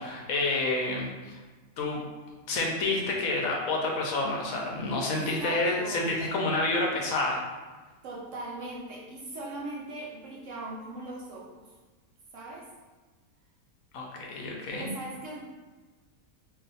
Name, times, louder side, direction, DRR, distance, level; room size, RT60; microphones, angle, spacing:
voice 1, 0.0-1.4 1.8-2.0 2.5-7.4 13.9-14.9, left 2 dB, 70° left, 0 dB, 1.0 m, -29 dB
voice 2, 5.1-6.0 8.0-11.7 12.3-12.7 14.7-15.4, right 2 dB, 70° right, -3 dB, 0.8 m, -39 dB
2.4 x 2.3 x 3.9 m, 1.3 s
omnidirectional pair, 1.6 m